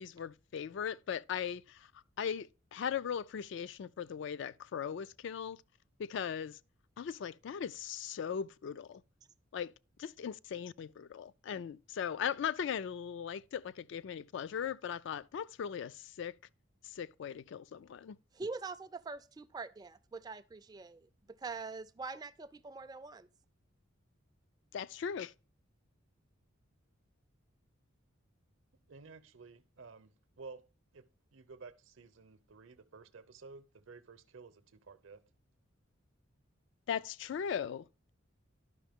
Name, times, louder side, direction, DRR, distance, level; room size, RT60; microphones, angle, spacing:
voice 1, 0.0-1.9 2.2-5.6 6.0-6.6 7.0-9.0 9.5-9.7 10.0-16.4 16.8-18.2 24.7-25.3 36.9-38.1, left 8 dB, 60° left, 0.3 m, -39 dB
voice 2, 18.3-23.3, right 4 dB, 20° right, 0.3 m, -44 dB
voice 3, 28.9-30.6 30.9-31.1 31.3-35.2, right 4 dB, 70° right, 0.7 m, -53 dB
11.0 x 5.6 x 3.5 m
head